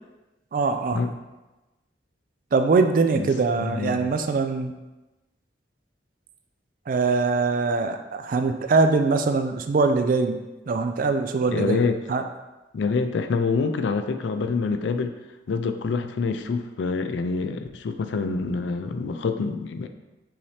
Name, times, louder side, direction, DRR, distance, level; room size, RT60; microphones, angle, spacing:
voice 1, 0.5-1.0 2.5-4.7 6.9-10.4 10.7-12.2, right 4 dB, 50° right, 7 dB, 0.3 m, -22 dB
voice 2, 3.6-4.1 11.5-12.0 12.7-15.1 15.5-19.9, left 4 dB, 80° left, 8 dB, 0.4 m, -26 dB
5.5 x 2.8 x 3.3 m, 1.1 s
head